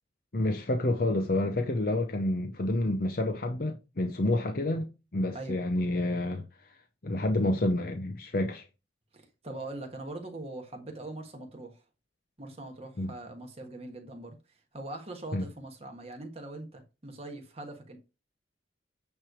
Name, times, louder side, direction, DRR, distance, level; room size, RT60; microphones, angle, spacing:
voice 1, 0.3-6.4 7.0-8.6 13.0-13.1 15.3-15.5, left 1 dB, 50° left, 0.7 m, -29 dB
voice 2, 9.1-11.8 12.4-14.4 14.7-18.0, right 2 dB, 35° right, 1.5 m, -42 dB
9.0 x 3.3 x 6.1 m
head